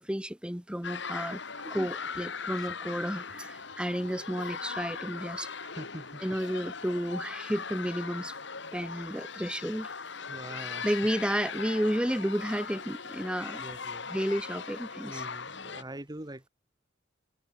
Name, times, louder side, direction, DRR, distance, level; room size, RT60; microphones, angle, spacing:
voice 1, 0.0-1.4 1.7-5.5 6.2-8.3 8.7-9.9 10.8-13.7 14.1-15.2, equal, 5° right, 2.0 m, -32 dB
sound 1, 0.8-15.8, left 5 dB, 65° left, 4.8 m, -39 dB
voice 2, 5.6-6.4 10.3-10.9 13.6-14.1 15.0-16.5, right 1 dB, 20° right, 2.0 m, -44 dB
head